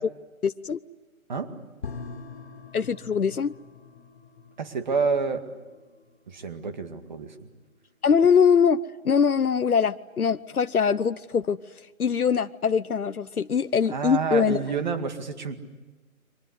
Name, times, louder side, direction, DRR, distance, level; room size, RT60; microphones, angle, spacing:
voice 1, 0.4-0.8 2.7-3.5 8.0-11.6 12.0-14.6, left 6 dB, 85° left, 12 dB, 0.9 m, -22 dB
sound 1, 1.8-9.0 9.3-9.4, left 4 dB, 45° left, 2.6 m, -44 dB
voice 2, 4.6-5.4 6.3-7.3 13.9-15.6, right 5 dB, 30° right, 7 dB, 2.1 m, -28 dB
30.0 x 24.0 x 8.2 m, 1.2 s
figure-of-eight pair, 160°, 43 cm